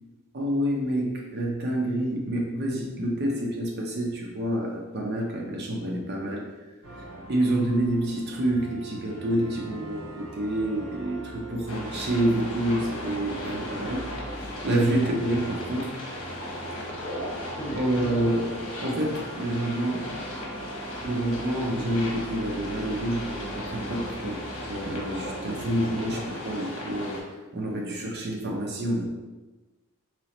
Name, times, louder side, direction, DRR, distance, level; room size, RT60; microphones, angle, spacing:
voice 1, 0.3-6.5 7.0-7.1 7.3-14.1 14.6-16.0 17.7-20.1 21.0-29.0, right 1 dB, 50° right, -1 dB, 0.5 m, -28 dB
sound 1, 6.8-26.1, right 1 dB, 65° right, 1.1 m, -42 dB
sound 2, 11.7-27.2, left 1 dB, 80° left, 1.0 m, -36 dB
3.9 x 3.0 x 2.9 m, 1.2 s
head